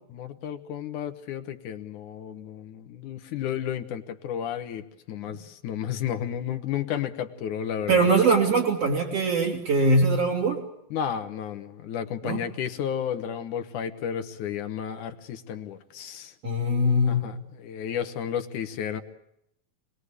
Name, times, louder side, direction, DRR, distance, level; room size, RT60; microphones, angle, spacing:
voice 1, 0.1-8.1 10.9-16.3 17.1-19.0, left 9 dB, 65° left, 9 dB, 2.4 m, -32 dB
voice 2, 7.9-10.6 12.2-12.4 16.4-17.3, right 2 dB, 45° right, 0 dB, 3.7 m, -22 dB
26.5 x 20.5 x 8.2 m, 0.78 s
omnidirectional pair, 4.1 m